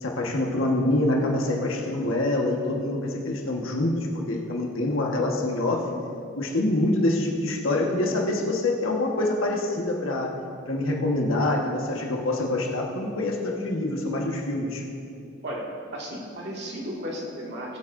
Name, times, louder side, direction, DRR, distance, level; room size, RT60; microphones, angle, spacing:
voice 1, 0.0-4.0 4.3-5.8 6.3-10.3 10.7-14.8, left 2 dB, 80° left, -1 dB, 1.4 m, -25 dB
voice 2, 15.4-17.8, equal, 55° right, -3 dB, 2.0 m, -34 dB
20.5 x 8.3 x 2.6 m, 2.5 s
head